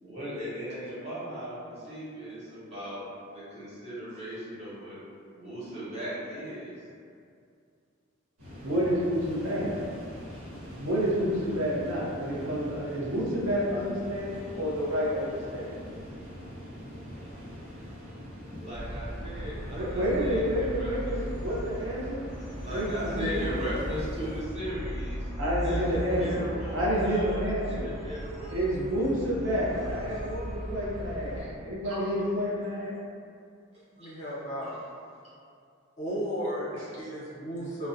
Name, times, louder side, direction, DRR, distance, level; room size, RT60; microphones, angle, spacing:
voice 1, 0.0-3.0 3.3-5.0 5.3-6.8 18.6-21.1 22.6-25.3 25.6-28.6 30.1-30.3 31.3-32.0 34.0-34.1 34.6-34.8, equal, 30° right, -11 dB, 0.8 m, -38 dB
sound 1, 8.4-24.4, equal, 90° right, 1.1 m, -43 dB
voice 2, 8.6-9.7 10.8-15.7 19.7-22.3 22.7-23.5 25.4-27.9 28.5-33.0 36.7-36.8 37.6-37.7, equal, 65° right, -6 dB, 0.5 m, -29 dB
sound 2, 18.7-31.4, equal, ahead, 0.9 m, -37 dB
voice 3, 34.0-34.7 36.0-36.7 37.0-37.9, equal, 35° left, -7 dB, 0.5 m, -34 dB
2.4 x 2.0 x 2.5 m, 2.3 s
head